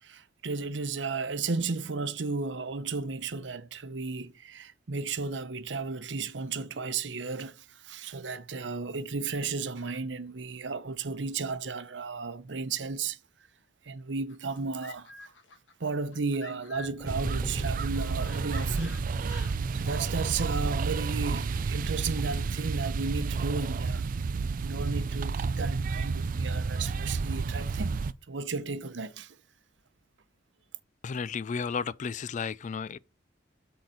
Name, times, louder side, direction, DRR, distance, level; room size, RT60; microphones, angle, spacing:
voice 1, 0.0-13.2 13.8-15.1 15.8-19.0 19.7-24.0 24.6-29.4, right 4 dB, 80° right, 0.8 m, -34 dB
sound 1, 14.3-17.0 17.4-19.6, left 3 dB, 90° left, 1.5 m, -49 dB
sound 2, 16.8-22.8, equal, 15° left, 3.3 m, -43 dB
sound 3, 17.1-28.1, right 4 dB, 50° right, 0.4 m, -31 dB
voice 2, 31.0-33.0, left 5 dB, 40° left, 0.3 m, -33 dB
8.5 x 4.0 x 6.2 m
head